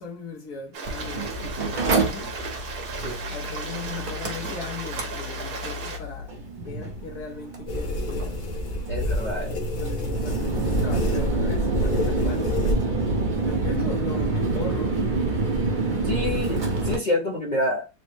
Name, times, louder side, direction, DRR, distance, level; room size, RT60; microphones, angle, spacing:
voice 1, 0.0-2.3 3.2-8.4 9.3-13.1 13.4-15.1, left 4 dB, 85° left, 1.5 m, -39 dB
Stream, 0.7-6.0, right 4 dB, 70° right, 1.4 m, -35 dB
Mechanical fan, 0.9-17.0, right 2 dB, 40° right, 0.8 m, -27 dB
sound 1, 7.7-12.7, left 1 dB, 65° left, 1.4 m, -28 dB
voice 2, 8.9-9.7 16.0-17.9, left 1 dB, 45° left, 0.6 m, -28 dB
4.1 x 2.1 x 3.3 m
omnidirectional pair, 1.6 m